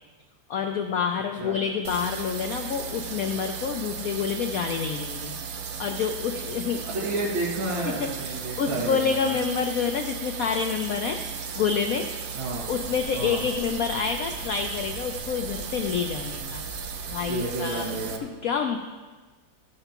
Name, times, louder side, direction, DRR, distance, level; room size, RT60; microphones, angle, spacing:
voice 1, 0.5-5.3 5.8-6.9 7.9-11.2 11.6-12.1 12.7-16.6 17.1-17.9 18.2-18.8, left 6 dB, 85° left, 5 dB, 0.7 m, -28 dB
sound 1, 1.8-18.2, right 6 dB, 65° right, 0.9 m, -36 dB
voice 2, 6.9-9.4 12.3-12.7 13.1-13.5 17.3-18.2, right 2 dB, 80° right, -6 dB, 2.7 m, -31 dB
sound 2, 12.4-17.5, left 4 dB, 25° left, 1.3 m, -46 dB
15.0 x 6.7 x 2.9 m, 1.3 s
omnidirectional pair, 2.2 m